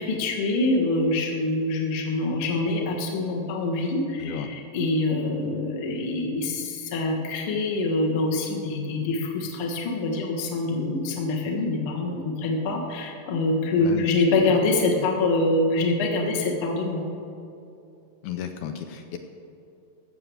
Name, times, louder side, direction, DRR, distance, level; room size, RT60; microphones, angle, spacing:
voice 1, 0.0-17.1, left 2 dB, 50° left, 1 dB, 1.8 m, -25 dB
voice 2, 13.8-14.1 14.4-14.6 15.0-15.1 18.2-19.2, left 9 dB, 75° left, 7 dB, 1.8 m, -33 dB
15.0 x 7.0 x 6.9 m, 2.8 s
omnidirectional pair, 4.0 m